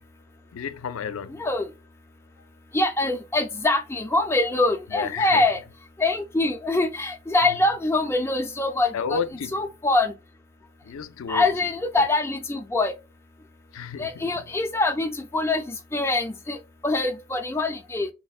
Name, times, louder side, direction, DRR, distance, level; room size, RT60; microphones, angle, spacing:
voice 1, 0.5-1.4 4.9-5.5 7.4-7.6 8.9-9.6 10.8-11.7 12.0-12.1 13.7-14.4, left 6 dB, 90° left, 0.4 m, -32 dB
voice 2, 1.4-1.7 2.7-5.6 6.0-9.2 9.5-10.1 11.3-12.9 14.0-18.1, left 2 dB, 10° left, 0.4 m, -24 dB
4.0 x 2.1 x 2.3 m
head